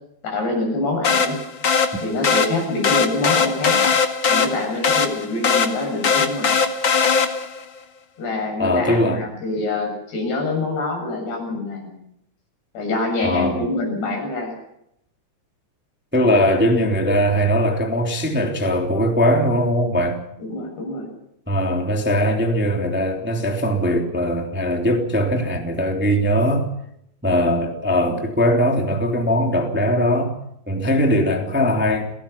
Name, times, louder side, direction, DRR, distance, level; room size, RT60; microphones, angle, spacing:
voice 1, 0.2-1.5 2.0-3.8 4.3-6.5 8.2-11.9 12.7-14.6 20.4-21.1, left 2 dB, 80° left, 2 dB, 9.4 m, -25 dB
sound 1, 1.0-7.6, left 5 dB, 40° left, 2.1 m, -20 dB
voice 2, 8.6-9.2 13.2-13.7 16.1-20.2 21.5-26.7 27.2-30.3 30.7-32.1, equal, 5° right, 2 dB, 2.3 m, -20 dB
29.5 x 18.5 x 5.8 m, 0.78 s
omnidirectional pair, 4.6 m